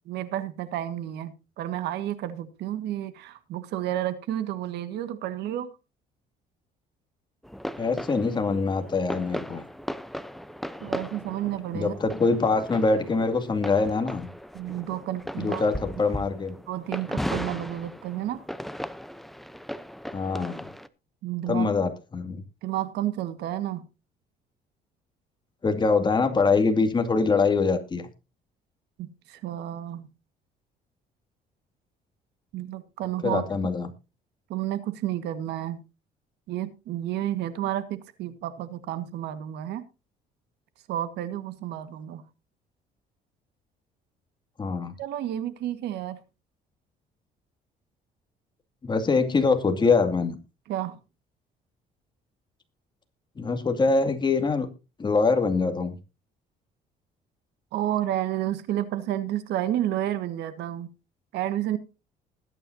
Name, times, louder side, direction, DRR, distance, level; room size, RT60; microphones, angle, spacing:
voice 1, 0.1-5.7 10.8-12.0 14.5-15.6 16.7-18.4 21.2-21.7 22.6-23.8 29.0-30.1 32.5-33.4 34.5-35.8 36.5-39.8 40.9-42.2 45.0-46.2 50.7-51.0 57.7-60.9 61.3-61.8, right 12 dB, 80° right, 12 dB, 1.7 m, -31 dB
sound 1, 7.4-20.9, equal, ahead, 0.7 m, -37 dB
voice 2, 7.8-9.6 11.7-14.3 15.4-16.5 20.1-20.7 21.5-22.4 25.6-28.1 33.2-33.9 44.6-44.9 48.8-50.4 53.4-54.7 55.0-56.0, left 4 dB, 25° left, 6 dB, 2.3 m, -24 dB
20.5 x 9.2 x 2.7 m, 0.29 s
cardioid pair, 110°, 17 cm